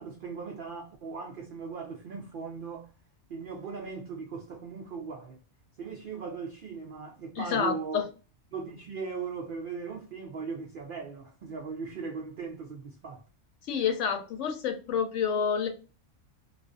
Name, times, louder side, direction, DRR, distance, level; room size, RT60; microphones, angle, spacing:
voice 1, 0.0-2.9 3.3-5.4 5.8-8.1 8.5-13.2, right 5 dB, 65° right, 0.5 m, -38 dB
voice 2, 7.4-8.0 13.6-15.7, left 7 dB, 70° left, 0.9 m, -28 dB
2.5 x 2.4 x 2.3 m
omnidirectional pair, 1.4 m